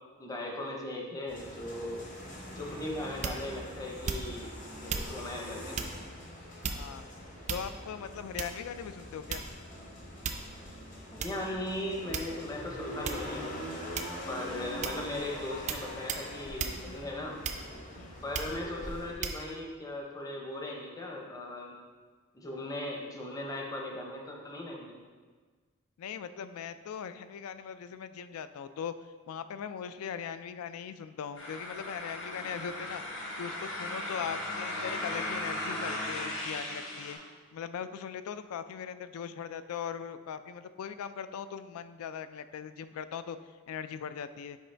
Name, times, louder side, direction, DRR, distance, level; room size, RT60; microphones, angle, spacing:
voice 1, 0.0-2.1 2.5-4.5 4.8-5.8 11.1-13.5 14.3-17.4 18.2-21.7 22.3-24.9, left 1 dB, 15° left, 0 dB, 0.6 m, -38 dB
sound 1, 1.3-19.1, equal, 40° left, 1.0 m, -44 dB
sound 2, 3.2-3.6 4.0-4.5 4.9-5.1 5.7-6.0 6.6-7.0 7.5-7.9 8.4-8.7 9.3-9.7 10.2-10.6 11.2-11.4 12.1-12.6 13.0-13.3 13.9-14.3 14.8-15.1 15.7-15.8 16.1-16.3 16.6-16.8 17.4-17.8 18.3-18.6 19.2-19.4, right 5 dB, 35° right, 0.3 m, -35 dB
voice 2, 6.7-7.1 7.5-9.5 18.0-18.2 26.0-28.9 29.3-33.0 33.4-37.2 37.5-43.4 43.7-44.6, left 7 dB, 85° left, 13 dB, 0.3 m, -40 dB
sound 3, 31.4-37.1, left 1 dB, 70° left, 1.1 m, -37 dB
6.4 x 4.6 x 3.3 m, 1.5 s
head